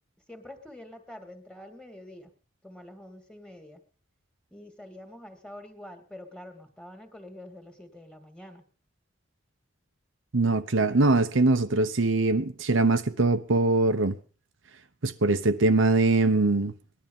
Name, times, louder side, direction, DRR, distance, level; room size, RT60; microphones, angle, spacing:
voice 1, 0.3-2.3 2.6-3.8 4.5-8.6, left 1 dB, 5° left, 2.3 m, -46 dB
voice 2, 10.3-14.2 15.0-16.7, right 2 dB, 80° right, 1.0 m, -22 dB
19.0 x 12.0 x 5.5 m
head